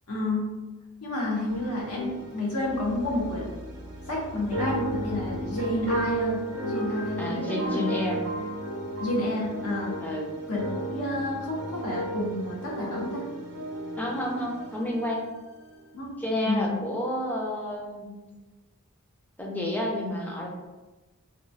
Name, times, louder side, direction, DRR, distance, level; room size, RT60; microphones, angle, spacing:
voice 1, 0.1-0.5 1.0-3.5 4.1-7.8 9.0-9.9 10.5-10.6 10.9-13.2 15.9-16.1 16.4-16.8, left 1 dB, 85° left, -4 dB, 0.9 m, -30 dB
sound 1, 1.5-15.3 15.6-15.7, right 1 dB, 75° right, 0.6 m, -34 dB
voice 2, 7.2-8.2 10.0-10.3 14.0-15.3 16.2-18.2 19.4-20.5, left 1 dB, 10° left, -1 dB, 0.4 m, -30 dB
2.9 x 2.2 x 2.6 m, 1.2 s
head